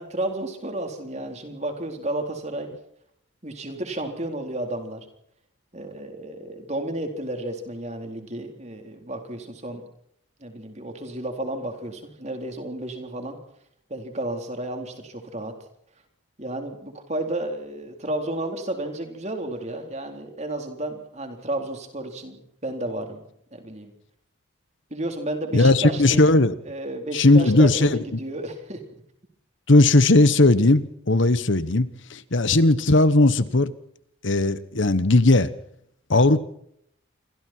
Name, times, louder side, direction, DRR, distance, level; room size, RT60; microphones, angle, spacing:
voice 1, 0.0-2.7 3.4-5.1 5.7-9.8 10.4-13.4 13.9-15.5 16.4-23.2 23.5-23.9 24.9-26.3 26.7-28.8, right 1 dB, 35° right, 4.1 m, -32 dB
voice 2, 25.5-26.5 27.1-28.0 29.7-33.7 34.2-35.5 36.1-36.4, left 2 dB, 65° left, 1.2 m, -17 dB
28.0 x 24.0 x 4.6 m
head